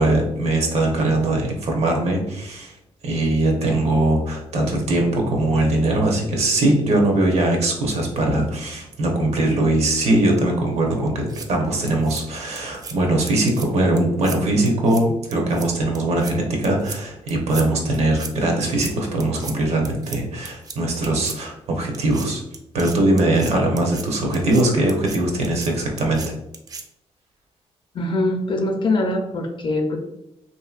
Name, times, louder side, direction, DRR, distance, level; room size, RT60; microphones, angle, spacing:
voice 1, 0.0-2.7 3.0-11.2 11.5-22.4 22.7-26.3, right 1 dB, 70° right, 1 dB, 0.8 m, -21 dB
sound 1, 11.1-11.5 11.9-12.2 12.6-12.9 13.3-13.7 14.0-14.4 14.7-15.0 15.3-15.7 15.9-16.3 16.6-17.0 17.3-17.6 17.9-18.3 18.6-18.9 19.2-19.5 19.8-20.2 20.5-20.8 21.0-21.4 21.9-22.3 22.5-24.0 24.3-24.6 24.9-25.2 25.4-25.7 26.0-26.3 26.5-26.8, right 4 dB, 35° right, 0.3 m, -36 dB
voice 2, 27.9-30.0, left 2 dB, 45° left, 4 dB, 0.5 m, -22 dB
3.0 x 2.8 x 2.3 m, 0.83 s
cardioid pair, 135°, 11 cm